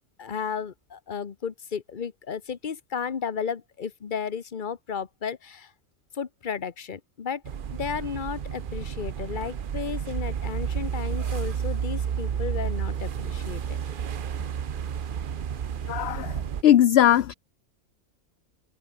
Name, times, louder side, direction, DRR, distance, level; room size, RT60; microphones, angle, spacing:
voice 1, 0.2-5.7 6.1-7.4 7.7-14.0, left 6 dB, 40° left, 1.1 m, -33 dB
sound 1, 7.4-16.6, right 8 dB, 45° right, 0.8 m, -31 dB
voice 2, 15.9-16.4 16.6-17.3, left 11 dB, 60° left, 0.8 m, -19 dB
omnidirectional pair, 1.5 m